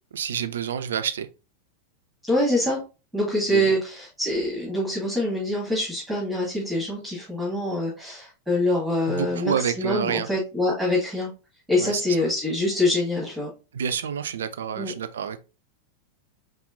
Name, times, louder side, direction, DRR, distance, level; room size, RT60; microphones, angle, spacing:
voice 1, 0.1-1.3 3.5-3.8 9.1-10.3 11.8-12.0 13.7-15.4, right 8 dB, 65° right, 0.4 m, -28 dB
voice 2, 2.3-2.8 3.1-11.3 11.7-13.5 14.8-14.9, left 1 dB, ahead, 1.9 m, -25 dB
4.2 x 3.7 x 2.6 m
figure-of-eight pair, 90°, 0 cm